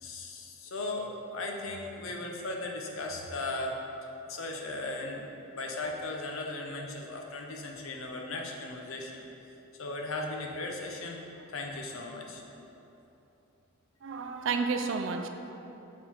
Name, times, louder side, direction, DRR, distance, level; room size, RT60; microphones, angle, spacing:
voice 1, 0.0-3.8 4.3-9.3 9.8-12.4, left 2 dB, 75° left, 1 dB, 0.7 m, -37 dB
voice 2, 14.0-15.3, right 4 dB, 60° right, 7 dB, 0.4 m, -31 dB
6.5 x 3.7 x 4.4 m, 3.0 s
head